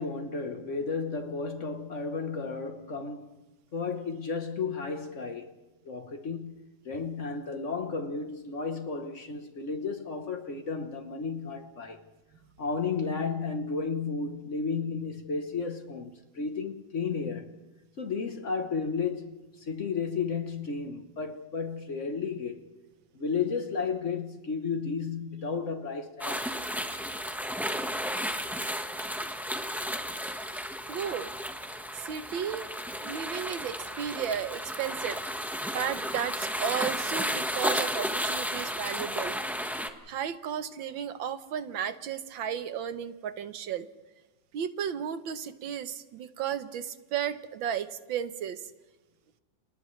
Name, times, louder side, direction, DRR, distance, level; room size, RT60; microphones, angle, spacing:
voice 1, 0.0-3.3 3.7-5.5 5.8-6.6 6.8-12.1 12.6-17.5 18.0-22.6 23.1-26.5, left 5 dB, 45° left, 1.2 m, -33 dB
sound 1, 26.2-39.9, equal, ahead, 0.9 m, -33 dB
voice 2, 30.9-31.3 31.9-32.7 33.0-39.4 40.1-43.9 44.5-48.6, right 8 dB, 85° right, 1.7 m, -34 dB
30.0 x 28.5 x 3.2 m
omnidirectional pair, 2.1 m